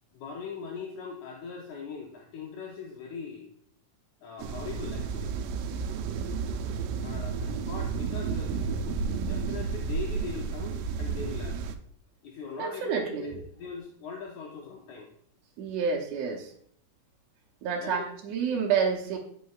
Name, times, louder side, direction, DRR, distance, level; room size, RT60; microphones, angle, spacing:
voice 1, 0.1-3.5 4.2-5.3 7.0-8.7 9.0-11.6 12.2-13.3 13.6-15.1 17.8-18.1, left 5 dB, 75° left, -1 dB, 2.0 m, -40 dB
sound 1, 4.4-11.7, right 5 dB, 90° right, 2.2 m, -32 dB
voice 2, 12.6-13.4 15.6-16.5 17.6-19.2, right 6 dB, 70° right, -1 dB, 1.9 m, -29 dB
9.7 x 5.4 x 2.3 m, 0.64 s
omnidirectional pair, 3.7 m